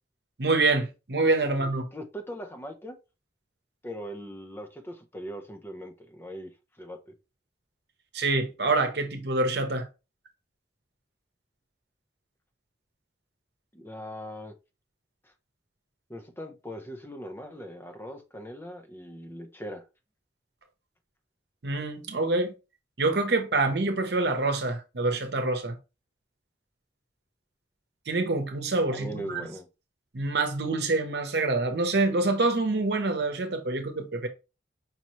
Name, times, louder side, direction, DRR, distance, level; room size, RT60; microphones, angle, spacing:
voice 1, 0.4-1.9 8.1-9.9 21.6-22.5 23.0-25.7 28.1-29.5 30.1-34.3, right 3 dB, 65° right, 0.9 m, -26 dB
voice 2, 1.4-3.0 3.8-6.5 6.8-7.1 13.7-14.5 15.2-15.3 16.1-19.8 28.9-29.7, equal, 15° left, 0.6 m, -40 dB
5.3 x 2.9 x 3.0 m
head